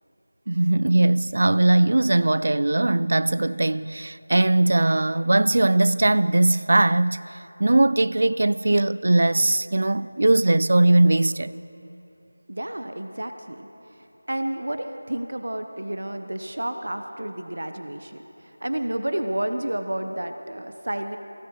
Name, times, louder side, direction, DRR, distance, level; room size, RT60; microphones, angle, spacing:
voice 1, 0.5-7.2 7.6-11.5, right 2 dB, 50° right, 0.3 m, -20 dB
voice 2, 12.5-21.2, right 1 dB, 70° right, 1.0 m, -31 dB
23.5 x 17.0 x 3.1 m
figure-of-eight pair, 175°, 0 cm